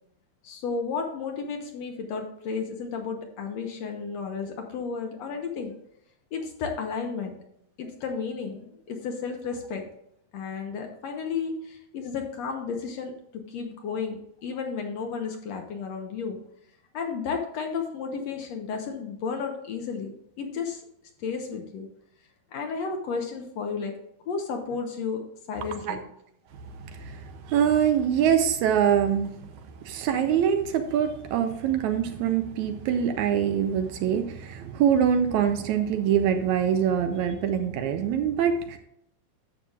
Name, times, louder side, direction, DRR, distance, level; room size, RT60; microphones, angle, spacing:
voice 1, 0.4-5.8 6.3-7.4 7.8-9.9 10.3-13.1 13.5-16.4 16.9-20.8 21.2-21.9 22.5-23.9 24.3-26.1, left 5 dB, 65° left, 3 dB, 1.9 m, -33 dB
voice 2, 26.8-29.3 29.8-38.8, right 8 dB, 75° right, 7 dB, 1.9 m, -24 dB
12.0 x 7.7 x 2.4 m, 0.75 s
omnidirectional pair, 3.6 m